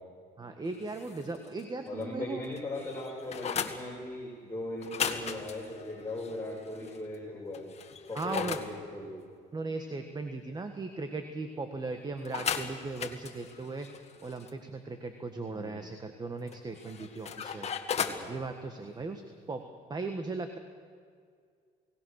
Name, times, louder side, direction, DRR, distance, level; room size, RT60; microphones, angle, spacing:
voice 1, 0.4-2.4 8.1-8.6 9.5-13.9 14.2-17.7 18.3-19.2 19.5-19.6 19.9-20.6, right 3 dB, 25° right, 7 dB, 1.6 m, -37 dB
sound 1, 0.7-1.7 2.0-2.1 2.4-3.8 4.8-7.0 7.5-8.7 12.2-14.5 16.5-18.3, left 7 dB, 40° left, 1.9 m, -37 dB
voice 2, 1.8-7.7 8.1-9.2 15.5-15.9 18.1-18.5, left 2 dB, 15° left, -5 dB, 5.5 m, -39 dB
29.0 x 18.0 x 6.6 m, 2.1 s
cardioid pair, 110°, 17 cm